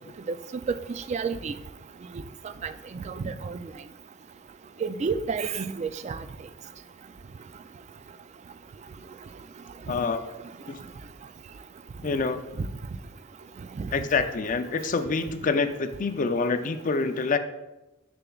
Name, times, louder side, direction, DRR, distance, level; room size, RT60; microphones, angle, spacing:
voice 1, 1.1-1.5 2.6-3.6 4.8-6.2 12.6-12.7 13.8-13.9, right 5 dB, 35° right, 12 dB, 0.3 m, -30 dB
voice 2, 9.9-10.2 10.7-10.8 12.0-12.4 13.9-17.4, left 4 dB, 40° left, 9 dB, 0.4 m, -26 dB
6.8 x 6.8 x 2.3 m, 1.0 s
head